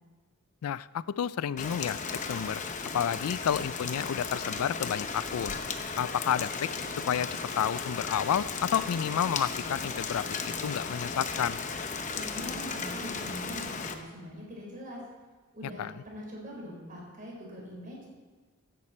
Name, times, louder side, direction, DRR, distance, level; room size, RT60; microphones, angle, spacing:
voice 1, 0.6-2.6 2.9-5.6 6.0-6.7 7.0-7.3 7.6-11.6 15.8-15.9, left 9 dB, 80° left, 18 dB, 0.3 m, -30 dB
Rain, 1.6-13.9, left 5 dB, 35° left, 0.8 m, -35 dB
voice 2, 12.2-15.0 15.5-18.1, equal, 35° right, -2 dB, 4.5 m, -42 dB
16.0 x 11.0 x 4.3 m, 1.3 s
head